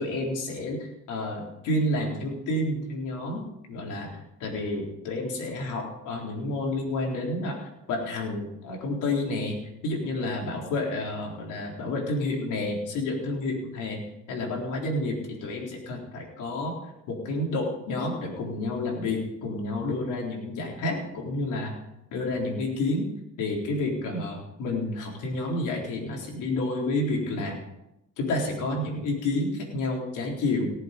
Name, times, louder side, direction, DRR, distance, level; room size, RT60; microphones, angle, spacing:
voice 1, 0.0-3.4 3.7-14.0 14.3-16.8 17.1-21.7 22.1-23.1 23.4-27.6 28.2-30.7, left 2 dB, 90° left, 0 dB, 3.9 m, -30 dB
18.5 x 7.8 x 5.3 m, 0.87 s
cardioid pair, 90°, 30 cm